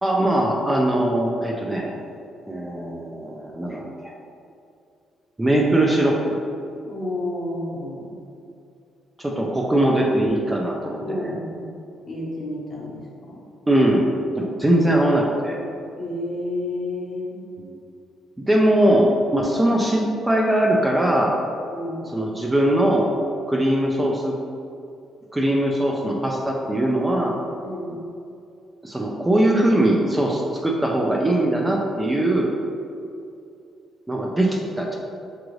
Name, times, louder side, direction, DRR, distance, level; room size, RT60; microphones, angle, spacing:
voice 1, 0.0-1.9 2.5-4.1 5.4-6.2 9.2-11.3 13.7-14.1 14.4-15.7 18.4-21.4 22.1-23.1 23.5-24.4 25.3-27.4 28.8-32.5 34.1-35.0, right 1 dB, 15° right, -1 dB, 0.5 m, -21 dB
voice 2, 6.8-8.2 11.0-11.7 12.1-13.4 16.0-17.4 21.7-22.1 27.6-28.0, left 1 dB, 40° left, -4 dB, 1.1 m, -31 dB
5.9 x 2.5 x 3.1 m, 2.5 s
cardioid pair, 90°, 0 cm